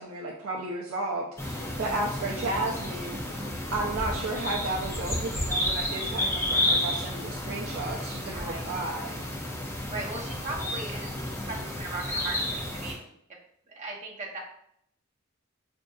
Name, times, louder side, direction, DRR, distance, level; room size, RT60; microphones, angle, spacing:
voice 1, 0.0-3.2 3.7-9.2, right 2 dB, 70° right, -1 dB, 0.5 m, -33 dB
sound 1, 1.4-12.9, left 1 dB, 15° left, 0.7 m, -31 dB
voice 2, 8.3-8.7 9.9-13.0 13.3-13.4 13.7-14.4, right 2 dB, 35° right, -3 dB, 0.9 m, -38 dB
5.1 x 2.6 x 2.4 m, 0.71 s
head